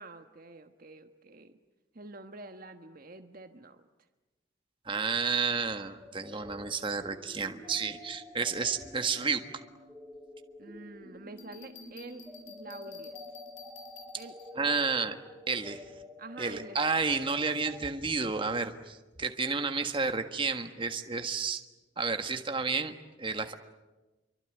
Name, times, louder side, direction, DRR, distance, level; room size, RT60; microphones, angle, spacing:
voice 1, 0.0-1.6 1.9-3.8 10.6-13.2 14.2-14.9 16.2-16.8, right 3 dB, 45° right, 7 dB, 1.3 m, -47 dB
voice 2, 4.8-9.4 14.6-15.2 15.5-15.9 16.4-21.6 22.0-23.5, right 4 dB, 25° right, 7 dB, 1.6 m, -31 dB
sound 1, 6.0-17.9, left 1 dB, 5° left, 7.7 m, -49 dB
Bell, 11.4-14.7, left 7 dB, 80° left, 5.7 m, -52 dB
27.5 x 24.0 x 9.1 m, 1.1 s
head